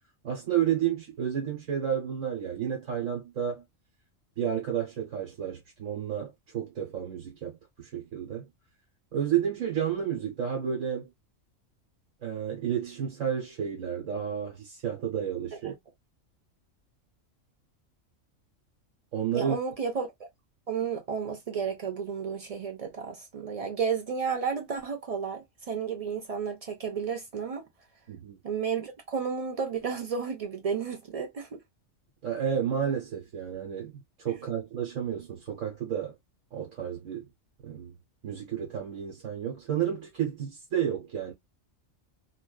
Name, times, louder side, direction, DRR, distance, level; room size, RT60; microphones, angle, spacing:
voice 1, 0.2-3.6 4.4-8.5 9.1-11.1 12.2-15.7 19.1-19.6 28.1-28.4 32.2-36.1 36.5-37.3 37.6-38.0 38.2-41.3, right 9 dB, 75° right, 1.3 m, -31 dB
voice 2, 19.3-20.3 20.7-27.6 28.4-31.6, right 6 dB, 55° right, 0.4 m, -32 dB
2.5 x 2.3 x 2.2 m
omnidirectional pair, 1.3 m